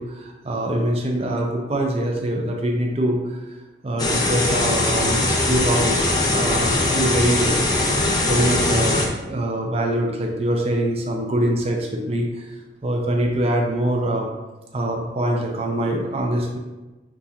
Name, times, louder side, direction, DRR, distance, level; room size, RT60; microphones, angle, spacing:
voice 1, 0.0-3.6 3.8-12.5 12.8-14.3 14.7-16.6, right 1 dB, 30° right, 1 dB, 0.5 m, -24 dB
sound 1, 4.0-9.1, left 2 dB, 20° left, 0.6 m, -21 dB
6.0 x 2.8 x 2.8 m, 1.1 s
head